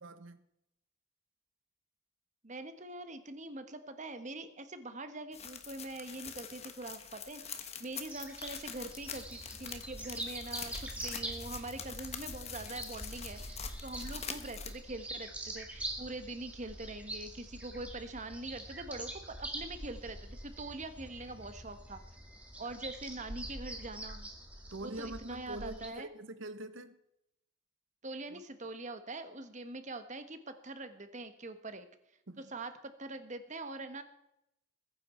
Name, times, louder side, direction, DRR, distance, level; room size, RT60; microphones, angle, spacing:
voice 1, 0.0-0.4 24.7-27.0 28.3-28.4 32.3-32.5, right 1 dB, 65° right, 1.1 m, -44 dB
voice 2, 2.4-22.0 22.6-24.3 24.8-26.1 28.0-31.9 32.4-34.0, right 2 dB, 35° right, 1.2 m, -43 dB
sound 1, 5.3-14.7, left 7 dB, 30° left, 1.3 m, -45 dB
sound 2, 8.1-25.9, right 1 dB, 5° right, 2.0 m, -44 dB
21.5 x 10.0 x 4.4 m
head